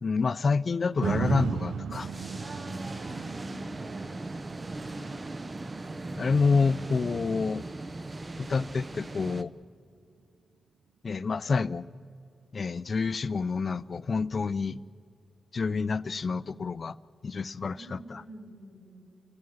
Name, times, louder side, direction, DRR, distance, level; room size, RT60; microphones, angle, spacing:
voice 1, 0.0-2.1 6.2-7.6 8.4-9.5 11.0-11.9 12.5-14.8 15.5-17.0 17.2-18.2, left 4 dB, 45° left, 17 dB, 0.4 m, -28 dB
sound 1, 1.0-9.2 9.7-9.8, right 7 dB, 75° right, 0.5 m, -37 dB
sound 2, 1.9-9.4, right 2 dB, 25° right, 0.6 m, -39 dB
voice 2, 2.4-4.2 17.7-19.0, right 2 dB, 55° right, -5 dB, 5.5 m, -47 dB
29.5 x 17.0 x 6.4 m, 2.4 s
wide cardioid pair, 125°, 0 cm